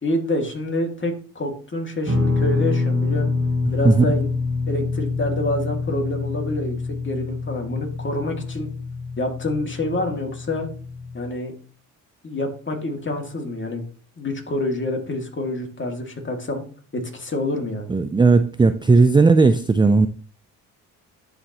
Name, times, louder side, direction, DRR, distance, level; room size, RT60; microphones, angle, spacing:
voice 1, 0.0-3.3 3.7-4.3 4.7-8.7 9.2-10.7 11.1-11.5 12.2-13.8 14.2-16.6 16.9-17.9, left 1 dB, 25° left, 2.3 m, -27 dB
Guitar, 2.1-11.3, left 3 dB, 30° right, 1.7 m, -26 dB
voice 2, 17.9-20.1, right 3 dB, 10° right, 0.4 m, -15 dB
11.0 x 4.1 x 2.9 m
supercardioid pair, 60°, 43 cm